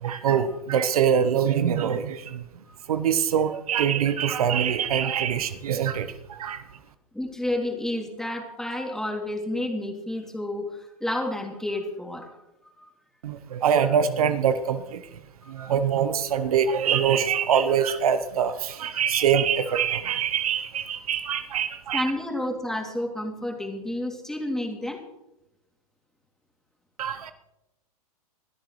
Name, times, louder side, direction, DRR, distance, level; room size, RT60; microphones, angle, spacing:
voice 1, 0.0-2.4 2.9-6.6 13.2-15.0 15.5-22.1 27.0-27.3, right 8 dB, 70° right, 11 dB, 1.1 m, -24 dB
voice 2, 7.1-12.3 12.8-12.9 15.4-15.7 21.9-25.0, left 1 dB, ahead, 1 dB, 2.8 m, -30 dB
22.5 x 13.0 x 3.2 m, 0.93 s
hypercardioid pair, 110°, 19 cm